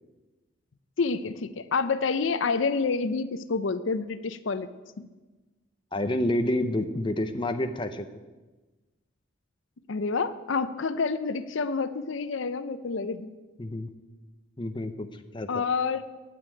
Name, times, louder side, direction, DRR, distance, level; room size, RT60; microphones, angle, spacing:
voice 1, 1.0-4.7 5.0-5.1 9.9-13.3 15.5-16.0, left 4 dB, 70° left, 13 dB, 0.6 m, -28 dB
voice 2, 5.9-8.1 13.6-13.9 14.6-15.5, left 1 dB, 25° left, 8 dB, 0.6 m, -28 dB
9.3 x 8.4 x 9.0 m, 1.2 s
head